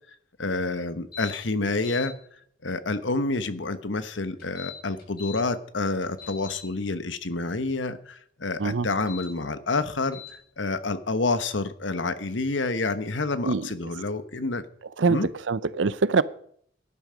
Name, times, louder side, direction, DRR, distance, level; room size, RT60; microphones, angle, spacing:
voice 1, 0.4-2.1 2.6-14.6 15.1-15.3, left 3 dB, 85° left, 1.2 m, -28 dB
sound 1, 1.1-1.3 1.7-2.1 4.4-5.4 5.8-6.6 8.9-9.3 10.1-10.3, left 10 dB, 50° left, 5.7 m, -41 dB
voice 2, 15.0-16.2, right 4 dB, 80° right, 0.6 m, -24 dB
17.5 x 11.0 x 5.1 m
head